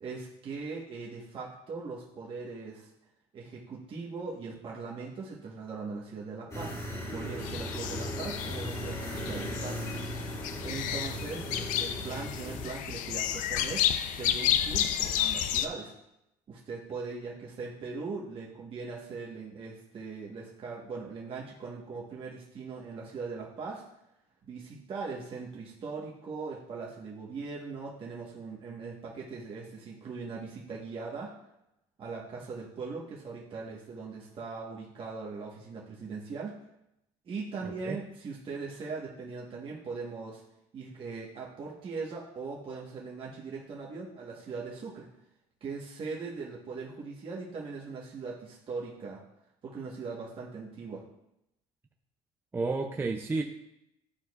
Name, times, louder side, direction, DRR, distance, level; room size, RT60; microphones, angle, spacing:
voice 1, 0.0-2.9 3.3-6.8 7.1-9.8 10.6-15.9 16.5-23.8 24.4-31.3 32.0-36.6 37.2-40.4 40.7-45.1 45.6-49.2 49.6-51.0, right 4 dB, 40° right, -4 dB, 1.2 m, -40 dB
sound 1, 6.5-12.7, equal, 25° left, 2.0 m, -38 dB
sound 2, 7.4-15.7, left 10 dB, 70° left, 0.5 m, -31 dB
voice 2, 37.6-38.0 52.5-53.4, right 3 dB, 15° right, 3 dB, 0.4 m, -31 dB
11.5 x 4.3 x 2.4 m, 0.84 s
cardioid pair, 120°, 14 cm